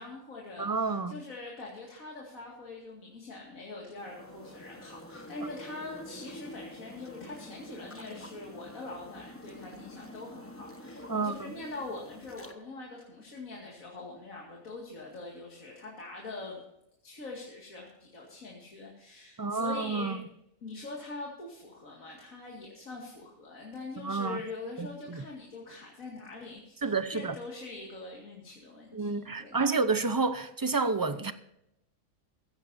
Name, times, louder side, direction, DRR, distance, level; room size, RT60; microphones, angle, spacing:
voice 1, 0.0-16.6 17.0-20.2 20.6-29.7, left 3 dB, 70° left, 2.6 m, -43 dB
voice 2, 0.6-1.1 11.1-11.3 19.4-20.2 24.0-24.4 24.8-25.2 26.8-27.3 28.9-31.3, right 4 dB, 25° right, 0.5 m, -29 dB
sound 1, 4.0-12.5, left 1 dB, 10° left, 1.0 m, -47 dB
15.5 x 15.5 x 2.7 m
omnidirectional pair, 1.5 m